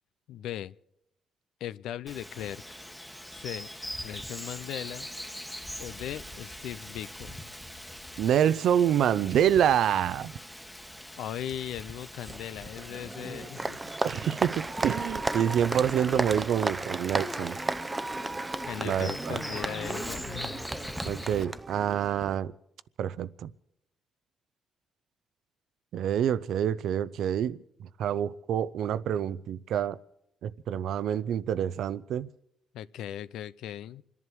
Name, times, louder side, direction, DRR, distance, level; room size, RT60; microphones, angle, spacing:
voice 1, 0.3-0.7 1.6-2.6 3.3-3.7 4.0-5.1 5.8-7.4 11.1-13.8 18.7-20.7 32.7-34.0, left 11 dB, 85° left, 0.5 m, -38 dB
Bird vocalization bird call bird song, 2.1-21.4, equal, 5° left, 1.2 m, -42 dB
voice 2, 8.2-10.3 14.0-17.6 18.8-19.4 21.0-22.5 23.0-23.5 25.9-30.0 30.4-32.3, right 9 dB, 75° right, 0.5 m, -27 dB
Applause, 12.3-22.4, right 2 dB, 20° right, 0.6 m, -34 dB
28.0 x 11.0 x 4.7 m
cardioid pair, 90°, 0 cm